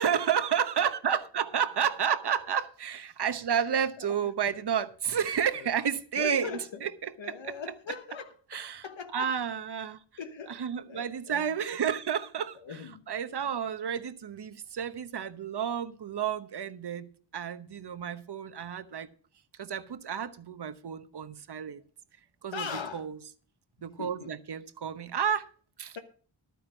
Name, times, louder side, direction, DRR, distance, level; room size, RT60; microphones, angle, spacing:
voice 1, 0.0-7.6 8.5-8.8 9.1-10.0 10.5-12.6 13.1-19.1 19.6-21.8 22.4-22.7 22.9-23.2 23.8-25.5 25.8-26.0, right 8 dB, 60° right, 1.0 m, -31 dB
voice 2, 6.2-6.8 7.2-9.3 10.2-10.6 10.9-11.5 12.5-13.1 22.5-23.1 24.0-24.3, left 6 dB, 75° left, 1.2 m, -40 dB
11.5 x 9.4 x 5.1 m
cardioid pair, 55°, 46 cm